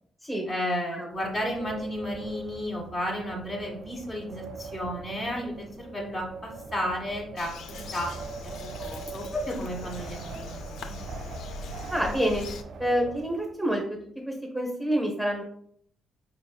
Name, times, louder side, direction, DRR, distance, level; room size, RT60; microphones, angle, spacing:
voice 1, 0.5-8.1 8.6-11.0, equal, 40° left, 0 dB, 1.3 m, -33 dB
Wind, 1.1-13.8, right 4 dB, 65° right, 0.3 m, -42 dB
Bird vocalization bird call bird song, 7.4-12.6, left 3 dB, 75° left, 0.3 m, -40 dB
voice 2, 11.9-12.5 12.8-13.8 14.3-15.4, equal, ahead, -1 dB, 0.8 m, -27 dB
4.7 x 2.9 x 2.2 m, 0.64 s
cardioid pair, 90°, 0 cm